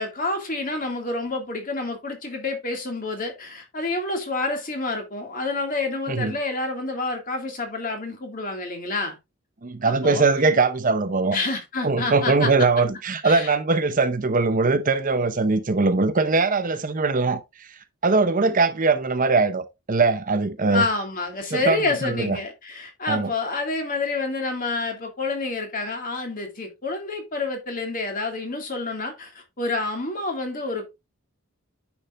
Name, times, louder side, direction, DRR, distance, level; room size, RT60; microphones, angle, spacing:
voice 1, 0.0-9.2 9.8-10.3 11.3-12.5 13.2-13.5 20.7-30.9, left 3 dB, 40° left, 2.3 m, -28 dB
voice 2, 9.6-11.4 11.8-17.7 18.0-20.9 21.5-22.4 23.1-23.3, right 3 dB, 40° right, 0.7 m, -21 dB
10.0 x 6.2 x 2.5 m
head